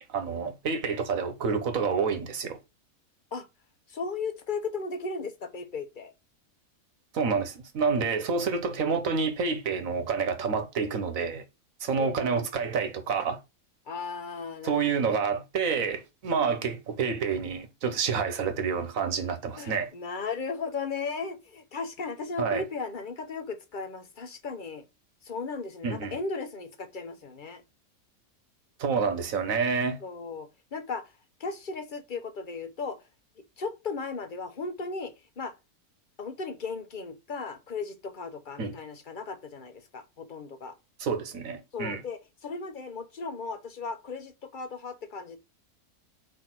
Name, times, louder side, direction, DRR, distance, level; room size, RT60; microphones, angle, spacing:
voice 1, 0.1-2.6 7.1-11.4 11.8-13.4 14.6-19.9 22.4-22.6 25.8-26.2 28.8-30.0 38.6-38.7 41.0-42.0, right 5 dB, 65° right, 1.5 m, -28 dB
voice 2, 3.9-6.1 12.0-12.4 13.9-15.2 16.3-16.6 19.6-24.8 25.2-27.6 30.0-31.1 31.4-33.0 33.6-35.5 36.2-40.7 41.7-45.4, left 4 dB, 40° left, 1.0 m, -36 dB
4.7 x 4.6 x 6.0 m
omnidirectional pair, 1.5 m